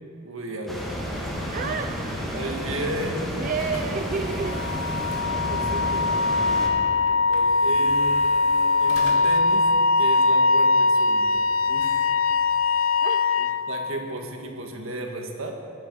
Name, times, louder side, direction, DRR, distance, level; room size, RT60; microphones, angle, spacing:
voice 1, 0.2-0.8 2.3-3.5 5.3-6.1 7.3-8.2 8.8-9.7 10.0-12.1 13.4-15.6, right 1 dB, 75° right, 2 dB, 1.8 m, -34 dB
sound 1, 0.7-6.7, equal, ahead, 2.5 m, -31 dB
voice 2, 1.5-2.0 3.3-4.6 13.0-13.4, right 5 dB, 40° right, 6 dB, 0.4 m, -30 dB
sound 2, 2.0-12.8, left 1 dB, 90° left, 2.6 m, -44 dB
Wind instrument woodwind instrument, 4.2-13.7, left 3 dB, 70° left, 0.5 m, -21 dB
21.0 x 10.5 x 4.8 m, 2.7 s
head